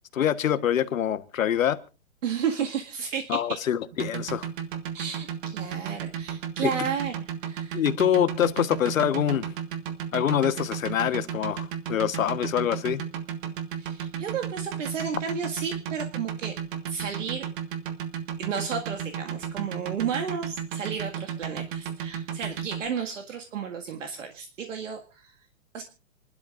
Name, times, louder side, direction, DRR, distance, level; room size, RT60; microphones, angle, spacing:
voice 1, 0.1-1.8 3.3-4.5 6.6-6.7 7.7-9.5 10.1-13.0, left 10 dB, 75° left, 1.3 m, -25 dB
voice 2, 2.2-3.4 4.9-7.8 13.8-16.5 16.9-17.5 18.4-25.3 25.7-25.8, right 7 dB, 65° right, 2.0 m, -32 dB
sound 1, 3.9-22.8, right 8 dB, 40° right, 1.7 m, -33 dB
27.0 x 12.0 x 2.5 m
hypercardioid pair, 160°, 40 cm